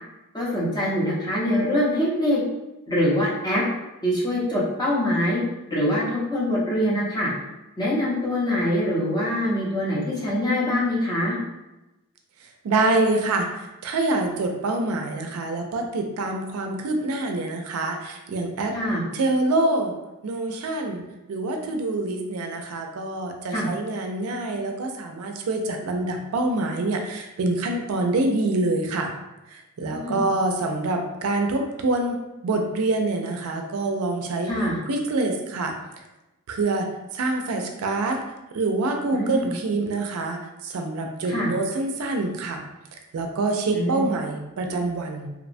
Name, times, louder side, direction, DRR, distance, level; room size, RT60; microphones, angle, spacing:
voice 1, 0.3-2.4 2.9-3.6 4.0-5.4 5.7-7.3 7.8-11.4 18.7-19.0 23.5-23.7 29.8-30.2 34.5-34.8 39.1-39.5 41.3-41.5 43.7-44.0, left 1 dB, 20° left, -6 dB, 0.6 m, -24 dB
voice 2, 12.4-18.8 19.1-19.9 20.2-21.0 21.3-29.1 29.5-34.5 34.9-35.8 36.5-38.2 38.5-42.6 43.1-45.3, right 2 dB, 75° right, 4 dB, 0.4 m, -26 dB
2.8 x 2.1 x 2.5 m, 0.99 s
head